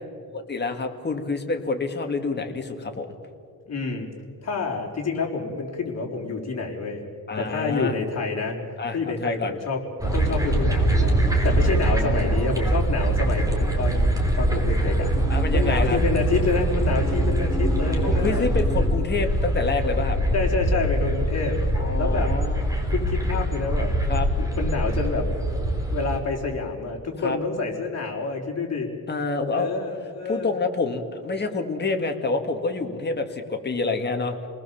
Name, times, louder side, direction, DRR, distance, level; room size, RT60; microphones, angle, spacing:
voice 1, 0.3-3.1 7.3-8.0 8.8-9.6 11.7-12.6 15.3-16.0 18.1-20.2 21.8-22.6 24.1-24.3 27.2-27.4 29.1-29.7 30.3-34.4, left 3 dB, 30° left, 4 dB, 2.2 m, -27 dB
voice 2, 3.7-4.1 4.4-7.0 7.4-8.6 8.9-9.8 10.1-11.2 11.4-15.1 15.5-18.5 20.3-21.6 22.0-22.3 22.9-23.9 24.4-25.3 25.9-28.9 29.5-30.5, left 4 dB, 45° left, -1 dB, 4.3 m, -28 dB
sound 1, 10.0-26.2, right 1 dB, 10° right, 3.6 m, -23 dB
29.5 x 20.0 x 7.3 m, 2.3 s
wide cardioid pair, 145°, 37 cm